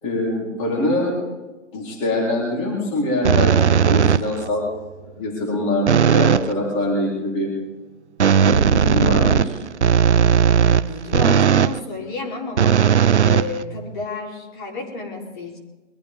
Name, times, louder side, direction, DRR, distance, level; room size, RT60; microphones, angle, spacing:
voice 1, 0.0-1.1 1.7-4.7 5.0-7.5 8.3-9.6, left 1 dB, 15° left, -3 dB, 4.1 m, -24 dB
sound 1, 3.2-4.5 5.9-6.5 8.2-11.8 12.6-14.0, right 8 dB, 65° right, 0.8 m, -16 dB
voice 2, 10.6-12.8 13.2-15.6, left 3 dB, 40° left, -2 dB, 4.0 m, -31 dB
23.0 x 14.5 x 3.7 m, 1.1 s
figure-of-eight pair, 155°, 37 cm